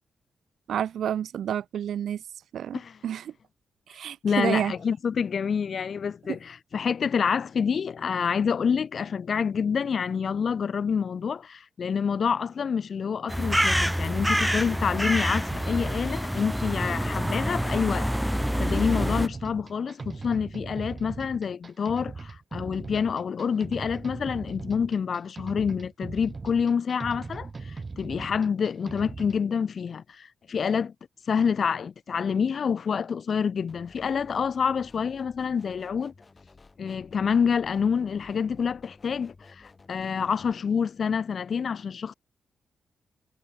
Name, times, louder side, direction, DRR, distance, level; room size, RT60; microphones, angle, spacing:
voice 1, 0.7-2.2 2.5-3.3 3.9-4.7, right 9 dB, 80° right, 1.4 m, -29 dB
voice 2, 4.2-18.1 18.6-30.9 31.3-36.1 36.8-42.1, left 6 dB, 60° left, 1.1 m, -27 dB
sound 1, 13.3-19.3, equal, ahead, 0.6 m, -26 dB
sound 2, 15.5-29.4, right 4 dB, 35° right, 1.5 m, -39 dB
sound 3, 33.7-40.5, left 3 dB, 35° left, 6.5 m, -53 dB
cardioid pair, 70°, 0 cm